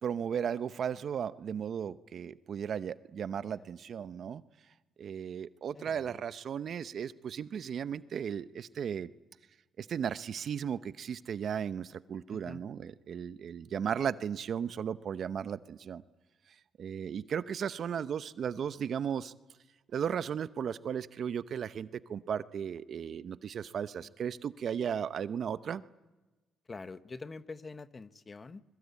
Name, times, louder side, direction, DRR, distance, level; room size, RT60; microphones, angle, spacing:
voice 1, 0.0-4.4 5.0-9.1 9.8-16.0 16.8-19.3 19.9-25.8, right 8 dB, 60° right, 15 dB, 0.7 m, -35 dB
voice 2, 3.3-3.7 5.7-6.2 12.3-12.6 24.0-24.1 26.7-28.6, left 3 dB, 30° left, 13 dB, 1.0 m, -46 dB
25.0 x 22.0 x 8.4 m, 1.2 s
cardioid pair, 90°, 0 cm